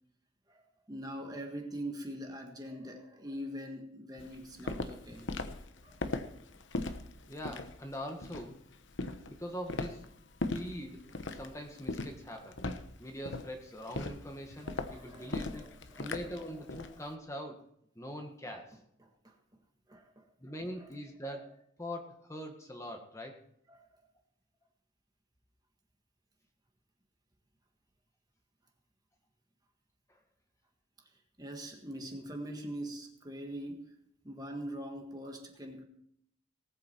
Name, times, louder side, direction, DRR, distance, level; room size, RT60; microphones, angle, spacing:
voice 1, 0.9-5.3 5.8-6.2 14.6-16.1 19.0-19.3 19.9-20.2 20.8-20.9 23.7-23.8 31.4-34.0 34.2-35.8, equal, 20° right, 3 dB, 1.6 m, -43 dB
Walk footsteps, 4.2-17.0, left 2 dB, 65° left, 1.0 m, -39 dB
voice 2, 7.3-8.6 9.3-10.0 10.5-11.1 11.3-12.6 13.0-17.6 17.9-18.8 20.4-21.5 21.8-23.4, equal, 15° left, 3 dB, 1.6 m, -42 dB
19.0 x 8.5 x 4.5 m, 0.70 s
head